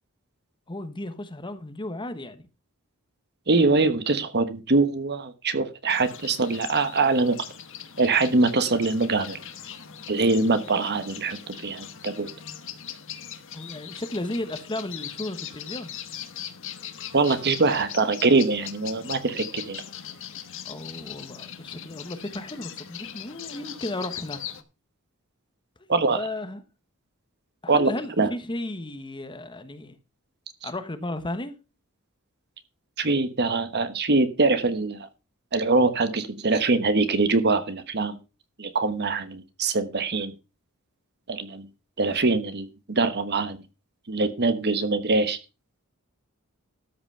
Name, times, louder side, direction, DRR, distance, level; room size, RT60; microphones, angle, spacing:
voice 1, 0.7-2.4 13.5-15.9 20.6-24.4 25.8-26.6 27.6-30.0 30.6-31.6, left 1 dB, 20° left, 1.2 m, -34 dB
voice 2, 3.5-7.4 8.0-9.4 10.1-12.3 17.1-19.8 25.9-26.2 27.7-27.9 28.2-28.3 30.6-30.7 33.0-35.1 35.5-38.2 38.6-40.3 41.3-41.7 42.0-43.6 44.1-45.4, right 3 dB, 50° right, 1.2 m, -23 dB
sound 1, 5.9-24.6, left 9 dB, 60° left, 1.3 m, -40 dB
13.0 x 6.0 x 5.5 m
head